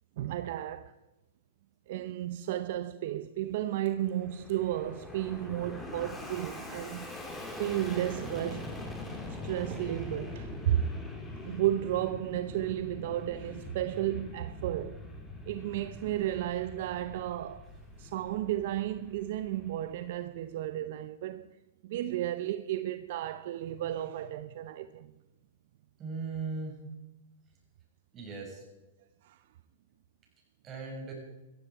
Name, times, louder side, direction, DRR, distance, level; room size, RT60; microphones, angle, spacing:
voice 1, 0.2-0.9 1.9-7.1 7.5-8.7 9.4-10.8 11.4-15.0 15.5-17.7 18.0-21.5 21.8-25.1 29.2-29.4, right 13 dB, 60° right, 0.7 m, -33 dB
Fixed-wing aircraft airplane, 3.6-20.3, left 2 dB, 10° left, 3.5 m, -43 dB
voice 2, 26.0-26.8 28.1-28.6 30.6-31.1, right 4 dB, 25° right, 6.3 m, -38 dB
15.5 x 15.0 x 4.8 m
hypercardioid pair, 130°, 0 cm